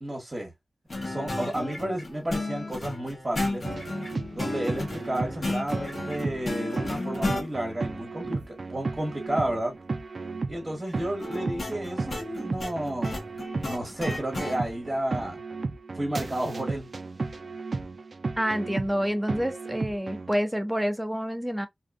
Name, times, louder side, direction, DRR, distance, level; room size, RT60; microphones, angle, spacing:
voice 1, 0.0-0.5 1.0-3.7 4.3-9.8 10.5-13.2 13.6-15.4 15.9-16.9, right 1 dB, 25° right, 1.2 m, -32 dB
sound 1, 0.9-7.5 11.2-14.6, left 2 dB, 60° left, 1.2 m, -33 dB
sound 2, 3.6-20.3, right 3 dB, 65° right, 0.3 m, -34 dB
voice 2, 18.4-21.7, equal, 5° right, 0.7 m, -28 dB
2.6 x 2.3 x 2.4 m
wide cardioid pair, 55°, 0 cm